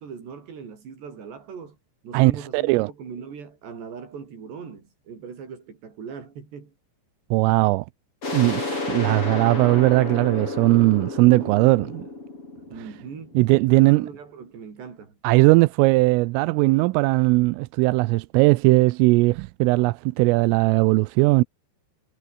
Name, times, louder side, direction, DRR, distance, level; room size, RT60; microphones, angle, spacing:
voice 1, 0.0-1.8 2.0-6.7 12.7-13.4 13.7-15.2, right 6 dB, 60° right, 7.2 m, -39 dB
voice 2, 2.1-2.9 7.3-7.9 8.3-12.1 13.4-14.1 15.2-21.4, right 22 dB, 85° right, 3.3 m, -19 dB
sound 1, 8.2-13.7, left 3 dB, 25° left, 7.8 m, -31 dB
omnidirectional pair, 5.8 m